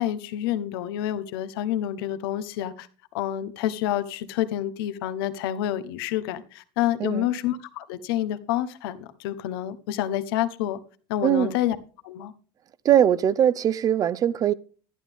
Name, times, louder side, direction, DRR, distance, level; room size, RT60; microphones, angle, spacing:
voice 1, 0.0-2.9 3.1-10.8 11.1-11.8 12.0-12.3, left 12 dB, 85° left, 0.9 m, -28 dB
voice 2, 11.2-11.6 12.8-14.5, right 10 dB, 30° right, 0.5 m, -21 dB
11.5 x 11.0 x 3.5 m
cardioid pair, 145°, 12 cm